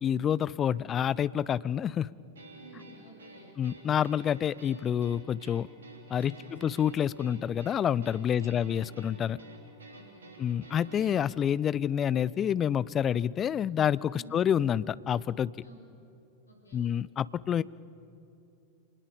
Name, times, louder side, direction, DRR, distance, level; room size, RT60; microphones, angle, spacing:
voice 1, 0.0-2.1 3.6-5.7 6.1-9.4 10.4-15.5 16.7-17.6, left 9 dB, 25° left, 20 dB, 0.5 m, -28 dB
sound 1, 2.3-11.1, right 2 dB, 70° right, 3.3 m, -51 dB
voice 2, 2.5-3.6 6.2-6.7 8.3-8.6 9.8-10.4 14.1-14.5 15.6-15.8 16.5-16.9, right 2 dB, 75° left, 0 dB, 6.8 m, -53 dB
27.0 x 20.0 x 7.2 m, 2.7 s
figure-of-eight pair, 90°, 0 cm